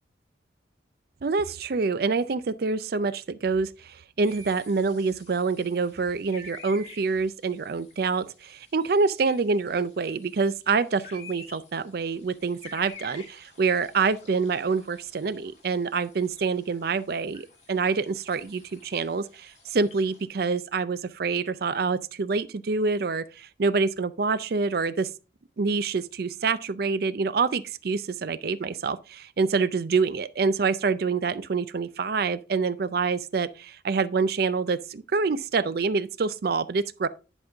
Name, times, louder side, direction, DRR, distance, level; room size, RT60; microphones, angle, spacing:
voice 1, 1.2-25.1 25.6-37.1, right 4 dB, 55° right, 0.4 m, -26 dB
sound 1, 4.2-20.2, left 2 dB, 40° left, 4.3 m, -50 dB
10.5 x 5.4 x 3.5 m
head